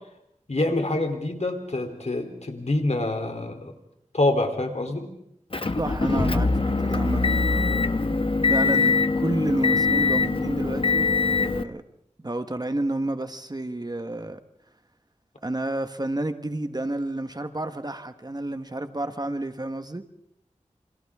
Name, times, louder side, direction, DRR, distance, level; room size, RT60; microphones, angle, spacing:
voice 1, 0.5-3.7 4.1-5.1, left 2 dB, 65° left, 5 dB, 3.4 m, -26 dB
Motor vehicle (road) / Engine, 5.5-11.6, left 4 dB, 45° left, 1.0 m, -23 dB
voice 2, 5.8-7.9 8.5-11.1 11.4-11.8 12.2-14.4 15.4-20.0, right 1 dB, 35° right, 8 dB, 1.4 m, -30 dB
29.0 x 26.5 x 3.7 m, 0.77 s
wide cardioid pair, 55°, 12 cm